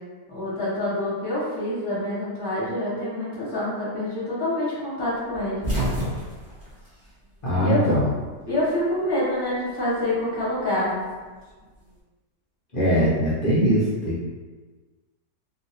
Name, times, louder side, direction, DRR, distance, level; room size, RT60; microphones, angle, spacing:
voice 1, 0.3-5.7 7.6-7.9 8.5-10.9, left 1 dB, 20° left, -8 dB, 0.7 m, -26 dB
sound 1, 5.3-7.8 8.1-9.2 10.4-11.9, right 1 dB, 20° right, 0.5 m, -31 dB
voice 2, 7.4-8.1 12.7-14.3, equal, 70° left, -9 dB, 0.5 m, -21 dB
2.8 x 2.8 x 2.7 m, 1.4 s
omnidirectional pair, 1.8 m